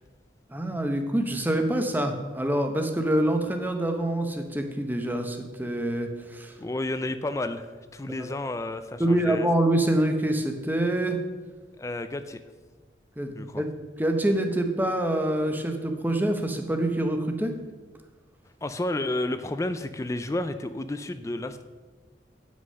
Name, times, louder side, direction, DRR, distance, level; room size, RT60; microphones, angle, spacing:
voice 1, 0.5-6.5 9.0-11.2 13.2-13.7 14.0-17.5, right 1 dB, 10° right, 5 dB, 0.9 m, -26 dB
voice 2, 6.6-9.5 11.8-12.4 13.3-13.6 18.6-21.6, left 2 dB, 15° left, 10 dB, 0.3 m, -31 dB
9.3 x 6.2 x 5.5 m, 1.3 s
head